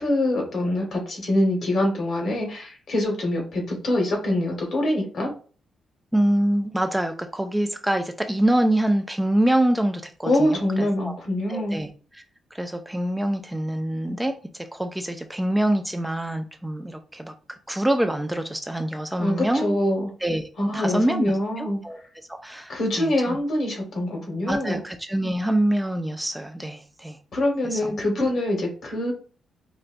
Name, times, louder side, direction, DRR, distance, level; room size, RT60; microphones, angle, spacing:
voice 1, 0.0-5.3 10.2-11.8 19.2-20.1 20.6-21.8 22.7-24.8 27.3-29.1, left 1 dB, 60° left, 1 dB, 1.1 m, -24 dB
voice 2, 6.1-11.2 11.5-11.9 12.1-12.2 12.5-17.3 17.7-19.8 20.2-22.0 22.3-23.4 24.5-27.2 27.6-27.9, right 1 dB, 5° right, 6 dB, 0.3 m, -25 dB
3.9 x 2.2 x 2.5 m, 0.39 s
cardioid pair, 100°, 0 cm